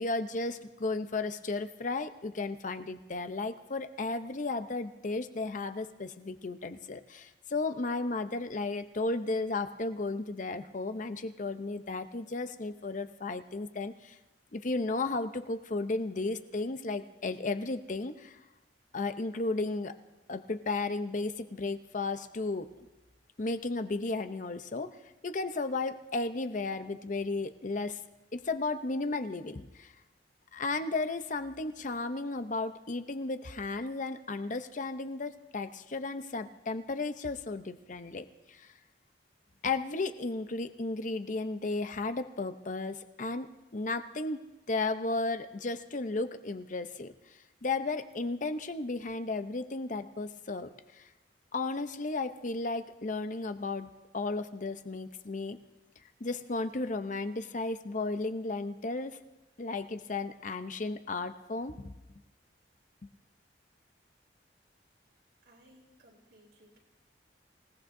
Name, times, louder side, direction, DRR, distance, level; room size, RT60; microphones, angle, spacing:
voice 1, 0.0-14.2 14.5-18.4 18.9-19.9 20.3-22.7 23.4-24.9 25.2-28.0 28.3-29.9 30.5-38.7 39.6-47.1 47.6-51.1 51.5-55.6 56.2-59.2 59.6-61.9, left 3 dB, 45° left, 10 dB, 0.7 m, -34 dB
voice 2, 64.8-66.8, equal, 85° right, -3 dB, 3.6 m, -62 dB
26.5 x 17.5 x 2.7 m, 1.1 s
head